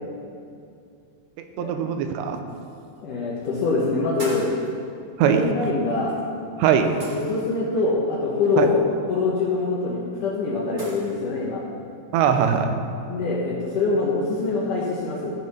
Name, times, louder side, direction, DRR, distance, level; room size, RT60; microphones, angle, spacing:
voice 1, 1.6-2.4 5.2-5.4 6.6-7.0 8.6-8.7 12.1-12.7, right 8 dB, 85° right, 6 dB, 2.9 m, -20 dB
sound 1, 2.2-2.3 3.3-3.6 4.2-4.7 6.0-6.2 7.0-7.6 9.6-9.7 10.8-11.1, equal, 50° right, 0.8 m, -38 dB
voice 2, 3.0-4.5 5.3-6.2 7.1-8.8 9.1-11.6 13.1-15.3, left 3 dB, 70° left, -5 dB, 2.1 m, -24 dB
15.0 x 6.5 x 4.2 m, 2.5 s
omnidirectional pair, 4.9 m